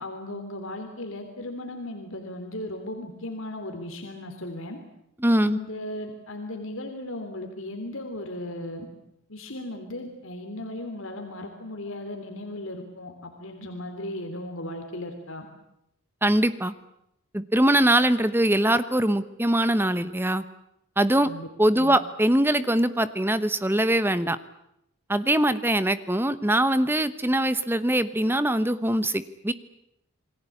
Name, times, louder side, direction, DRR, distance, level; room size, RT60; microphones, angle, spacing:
voice 1, 0.0-4.8 5.4-8.9 9.3-15.5 21.2-21.5 21.8-22.0, left 1 dB, 75° left, 4 dB, 3.4 m, -36 dB
voice 2, 5.2-5.6 16.2-16.7 17.3-20.4 21.0-21.3 21.6-24.4 25.1-29.5, right 1 dB, 10° right, 13 dB, 1.0 m, -22 dB
28.5 x 21.5 x 8.6 m, 0.79 s
head